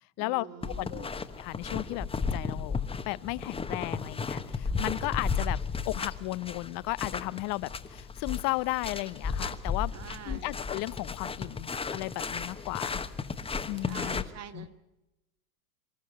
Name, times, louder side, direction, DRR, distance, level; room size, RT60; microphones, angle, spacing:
voice 1, 0.2-1.1 9.9-10.5 12.6-12.7 13.8-14.8, right 8 dB, 30° right, 8 dB, 2.1 m, -46 dB
sound 1, 0.6-14.2, left 5 dB, 10° left, 1.1 m, -34 dB
voice 2, 0.8-1.1 1.4-2.8 3.1-5.6 5.9-9.9 10.3-13.0 13.7-14.2 14.5-14.7, left 21 dB, 45° left, 20 dB, 0.8 m, -34 dB
25.0 x 13.0 x 9.5 m, 0.95 s
hypercardioid pair, 105°, 48 cm